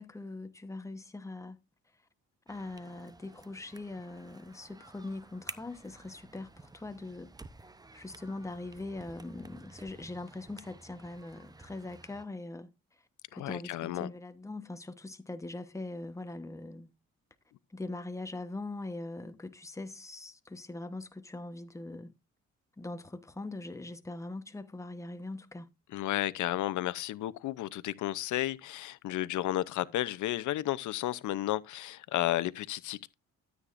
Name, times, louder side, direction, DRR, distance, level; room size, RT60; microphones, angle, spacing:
voice 1, 0.0-1.6 2.5-7.3 7.9-13.0 13.3-16.9 17.7-22.1 22.8-25.7, left 2 dB, 10° left, 1.1 m, -42 dB
sound 1, 2.5-12.2, right 2 dB, 15° right, 0.7 m, -52 dB
voice 2, 13.3-14.1 25.9-33.1, left 14 dB, 75° left, 0.7 m, -33 dB
13.0 x 8.5 x 2.6 m
cardioid pair, 90°, 30 cm